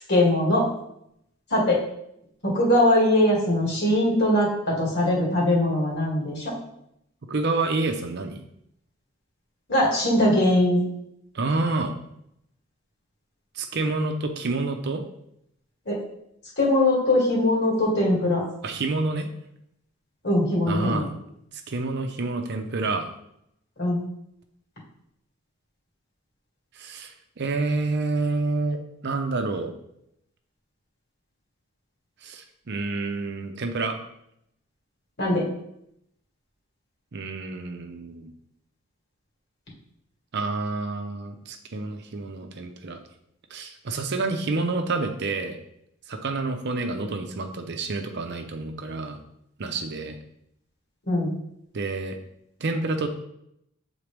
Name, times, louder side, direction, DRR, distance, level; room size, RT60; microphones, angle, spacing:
voice 1, 0.1-0.7 1.5-1.8 2.4-6.4 9.7-10.8 15.9-16.0 16.6-18.4 20.2-21.1 23.8-24.0 35.2-35.4 51.1-51.3, left 1 dB, 55° left, -4 dB, 2.1 m, -21 dB
voice 2, 7.3-8.4 11.3-12.0 13.6-15.0 18.6-19.3 20.7-21.1 21.7-23.1 26.8-29.7 32.2-34.0 37.1-38.3 40.3-43.0 43.5-45.6 46.1-49.2 49.6-50.2 51.7-52.2 52.6-53.1, right 3 dB, 55° right, 6 dB, 0.6 m, -28 dB
7.3 x 4.0 x 3.4 m, 0.75 s
head